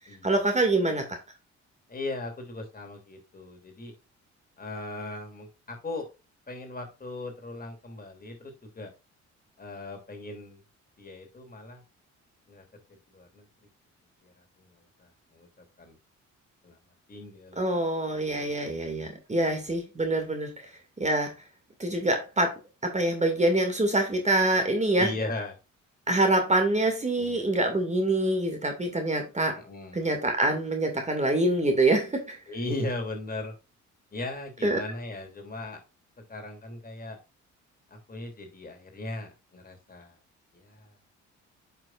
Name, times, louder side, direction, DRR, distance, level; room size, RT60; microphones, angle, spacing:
voice 1, 0.2-1.2 17.6-20.7 21.0-21.3 21.8-25.1 26.1-29.6 29.9-32.4 34.6-34.8, right 2 dB, 25° right, 2.2 m, -25 dB
voice 2, 1.9-3.9 4.6-6.1 6.5-8.9 9.6-10.6 11.0-11.8 12.5-12.6 13.1-13.5 14.2-14.7 15.0-15.5 15.8-16.0 16.6-16.8 17.1-17.6 19.4-19.5 25.0-25.5 27.2-27.5 29.5-30.1 32.5-33.5 34.1-35.8 36.3-37.2 37.9-40.2 40.5-40.9, left 2 dB, 30° left, 2.9 m, -38 dB
8.7 x 5.9 x 2.5 m
cardioid pair, 90°, 30 cm